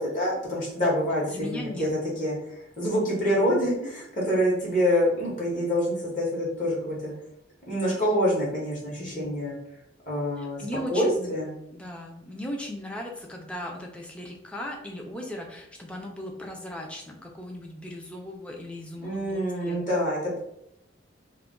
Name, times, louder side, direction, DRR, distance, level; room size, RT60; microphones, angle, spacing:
voice 1, 0.0-1.9 2.2-7.1 7.7-9.6 10.1-10.6 10.9-11.5 19.0-20.4, equal, 45° left, -5 dB, 0.9 m, -26 dB
voice 2, 1.3-1.9 3.4-3.7 9.0-9.4 10.4-11.3 11.7-19.8, left 1 dB, 5° left, -1 dB, 0.4 m, -38 dB
2.3 x 2.1 x 3.7 m, 0.80 s
head